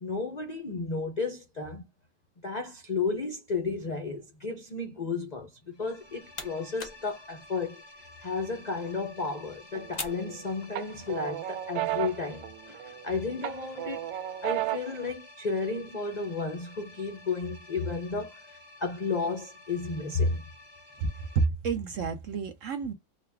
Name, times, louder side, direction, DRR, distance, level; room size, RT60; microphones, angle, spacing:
voice 1, 0.0-1.8 2.4-7.8 8.2-14.0 14.4-18.4 18.8-20.4, left 4 dB, 90° left, 0.3 m, -33 dB
sound 1, 5.7-21.5, left 2 dB, 15° left, 1.0 m, -52 dB
sound 2, 5.8-11.1, left 3 dB, 35° left, 0.7 m, -46 dB
sound 3, 9.7-10.3 10.7-13.0 13.4-15.0, right 15 dB, 85° right, 1.3 m, -33 dB
voice 2, 21.3-22.9, right 5 dB, 65° right, 0.8 m, -29 dB
3.9 x 2.3 x 3.4 m
omnidirectional pair, 2.0 m